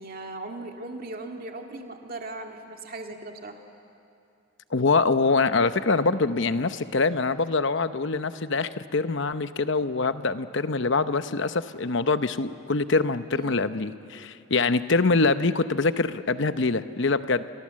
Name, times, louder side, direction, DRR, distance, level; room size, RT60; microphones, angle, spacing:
voice 1, 0.0-3.6 13.3-13.6, right 2 dB, 45° right, 3 dB, 2.1 m, -38 dB
voice 2, 4.7-17.5, left 3 dB, 60° left, 11 dB, 0.8 m, -24 dB
30.0 x 25.0 x 7.5 m, 2.6 s
head